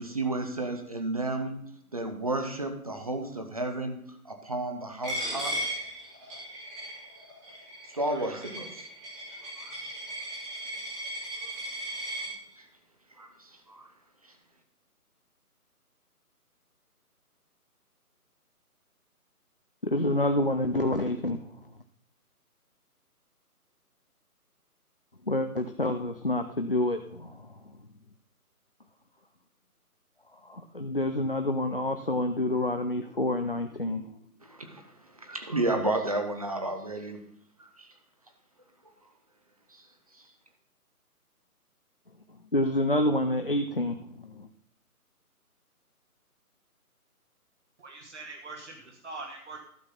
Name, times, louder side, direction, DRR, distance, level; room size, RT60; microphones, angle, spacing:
voice 1, 0.0-1.5 1.9-5.8 7.8-8.9 9.3-9.8 11.4-11.5 11.8-12.2 12.6-12.7 13.2-13.9 34.4-37.2 37.8-37.9 39.7-39.9 40.1-40.3, right 2 dB, 25° right, 5 dB, 0.8 m, -33 dB
Coin (dropping), 5.0-12.3, equal, 5° right, 1.2 m, -37 dB
voice 2, 19.8-21.5 25.3-27.7 30.3-34.1 42.5-44.5, left 1 dB, 40° left, 6 dB, 0.4 m, -28 dB
voice 3, 47.8-49.6, right 3 dB, 50° right, 1 dB, 1.5 m, -43 dB
12.0 x 6.3 x 5.3 m, 0.68 s
figure-of-eight pair, 150°, 46 cm